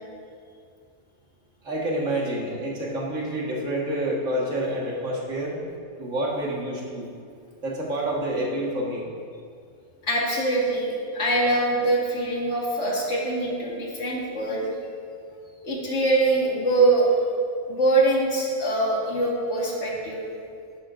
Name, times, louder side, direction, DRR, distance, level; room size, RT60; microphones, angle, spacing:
voice 1, 1.6-5.6 6.0-7.1 7.6-9.1, right 1 dB, 85° right, -3 dB, 2.1 m, -28 dB
voice 2, 10.0-14.7 15.6-17.2 17.7-20.2, right 2 dB, 70° left, -4 dB, 2.2 m, -23 dB
12.0 x 10.5 x 2.6 m, 2.3 s
omnidirectional pair, 1.3 m